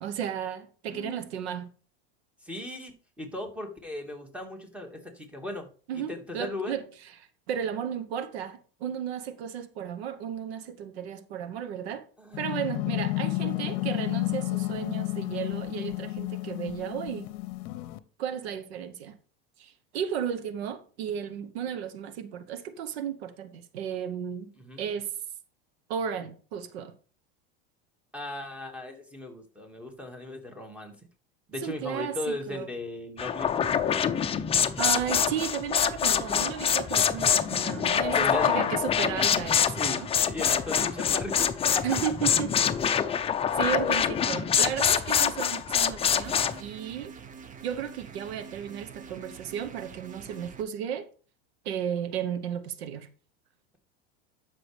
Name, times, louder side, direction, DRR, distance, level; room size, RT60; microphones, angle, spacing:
voice 1, 0.0-1.7 5.9-6.9 7.2-12.1 12.4-17.3 18.2-19.2 19.6-24.5 24.8-25.1 25.9-26.9 31.6-32.7 34.8-40.1 41.8-42.5 43.6-47.1 47.6-51.1 51.6-53.1, right 9 dB, 85° right, 1.0 m, -34 dB
voice 2, 0.9-1.3 2.4-5.7 5.9-6.7 12.2-12.7 13.7-13.9 24.6-24.8 28.1-31.1 31.5-33.8 38.1-38.8 39.8-41.5 41.7-41.8, left 1 dB, 5° right, 1.8 m, -37 dB
sound 1, 12.3-18.0, left 20 dB, 60° left, 0.8 m, -31 dB
sound 2, 33.2-46.6, left 8 dB, 20° left, 0.6 m, -25 dB
sound 3, 46.2-50.6, right 6 dB, 25° right, 0.8 m, -46 dB
12.0 x 5.9 x 3.3 m
supercardioid pair, 130°, 31 cm